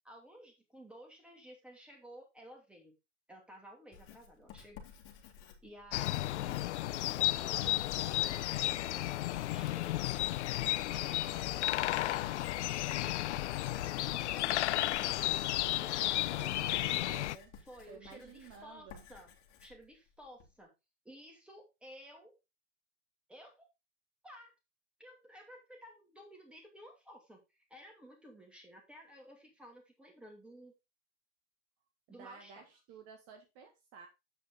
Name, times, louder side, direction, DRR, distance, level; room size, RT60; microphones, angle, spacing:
voice 1, 0.0-2.9 3.3-4.8 5.6-6.6 7.4-10.1 10.9-11.7 11.9-12.6 12.9-13.8 14.1-15.2 15.7-17.2 17.6-19.3 19.6-20.7 21.0-22.3 23.3-23.7 24.2-24.5 25.0-30.7 32.1-32.6, equal, 5° right, 1 dB, 2.7 m, -54 dB
Writing, 3.9-20.5, left 7 dB, 35° left, 2.4 m, -55 dB
sound 1, 5.9-17.4, left 15 dB, 70° left, 0.6 m, -33 dB
voice 2, 16.0-17.5 17.9-19.0 32.1-34.1, right 6 dB, 40° right, 5 dB, 1.6 m, -53 dB
8.1 x 5.9 x 3.9 m, 0.25 s
hypercardioid pair, 125°, 36 cm